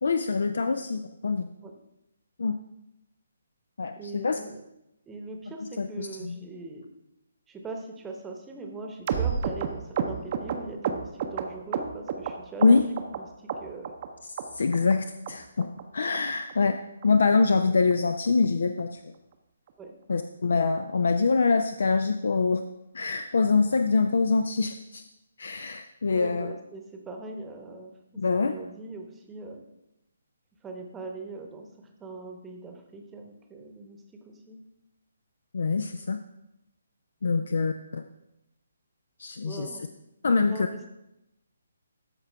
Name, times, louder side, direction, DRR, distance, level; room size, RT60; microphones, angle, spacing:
voice 1, 0.0-1.5 2.4-2.6 3.8-4.4 5.8-6.5 12.6-12.8 14.5-16.8 17.0-19.0 20.1-22.6 22.9-25.0 25.4-26.5 28.2-28.5 35.5-36.2 37.2-38.0 39.2-39.7 40.2-40.7, left 4 dB, 55° left, 9 dB, 0.4 m, -24 dB
voice 2, 4.0-4.6 5.1-6.9 7.5-14.0 19.8-19.9 26.1-29.6 30.6-34.6 37.3-37.5 39.4-39.9 40.3-40.9, right 3 dB, 10° right, 3 dB, 1.0 m, -41 dB
sound 1, 9.1-12.3 12.6-13.2 13.5-14.1 14.4-14.5 14.7-15.0 15.3-15.4 15.6-15.8 16.1-16.2 16.5-16.7 17.0-17.1 17.4-17.6 17.9-18.0 18.3-18.5 18.8-18.9, right 7 dB, 35° right, 0.6 m, -30 dB
13.0 x 4.6 x 3.3 m, 0.87 s
figure-of-eight pair, 135°, 0 cm